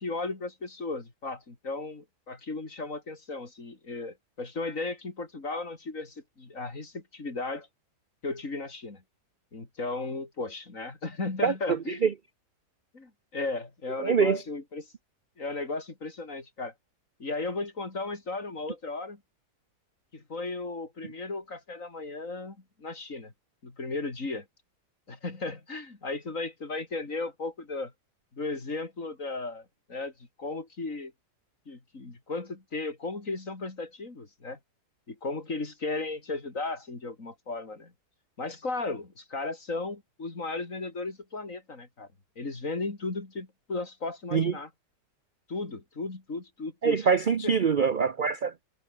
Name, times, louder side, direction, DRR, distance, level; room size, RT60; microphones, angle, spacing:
voice 1, 0.0-7.7 8.2-9.0 9.5-12.1 12.9-14.9 15.4-16.7 17.2-19.2 20.1-23.3 23.6-24.5 25.1-27.9 28.3-30.1 30.4-31.1 31.7-34.6 35.1-37.9 38.4-42.1 42.4-44.7 45.5-47.1 47.4-47.5, left 3 dB, 45° left, 4.0 m, -35 dB
voice 2, 11.4-12.1 14.0-14.4 44.3-44.5 46.8-48.6, right 6 dB, 55° right, 0.5 m, -24 dB
omnidirectional pair, 1.8 m